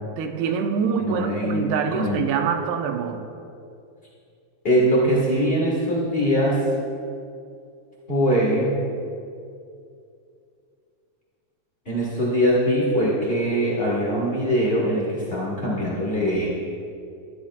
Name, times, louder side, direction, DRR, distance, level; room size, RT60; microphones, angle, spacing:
voice 1, 0.2-3.3, right 6 dB, 90° right, 5 dB, 2.6 m, -25 dB
voice 2, 1.0-2.2 4.6-6.7 8.1-8.8 11.8-16.5, equal, 65° left, -6 dB, 0.5 m, -22 dB
15.5 x 12.0 x 2.4 m, 2.5 s
omnidirectional pair, 4.5 m